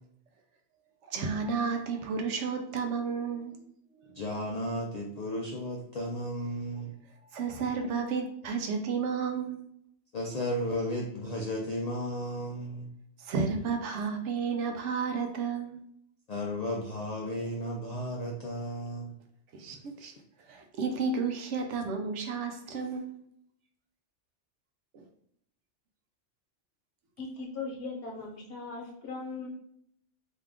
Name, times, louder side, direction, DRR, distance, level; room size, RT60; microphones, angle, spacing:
voice 1, 1.1-3.6 4.0-4.2 7.3-9.6 13.2-15.8 19.5-20.1 20.5-23.2 24.9-25.0, right 5 dB, 75° right, 5 dB, 0.9 m, -32 dB
voice 2, 4.2-6.9 7.8-7.9 10.1-12.9 16.3-19.1, equal, 80° left, -1 dB, 0.3 m, -34 dB
voice 3, 27.2-29.5, left 3 dB, 55° left, -2 dB, 1.0 m, -39 dB
2.8 x 2.3 x 3.5 m, 0.71 s
omnidirectional pair, 1.3 m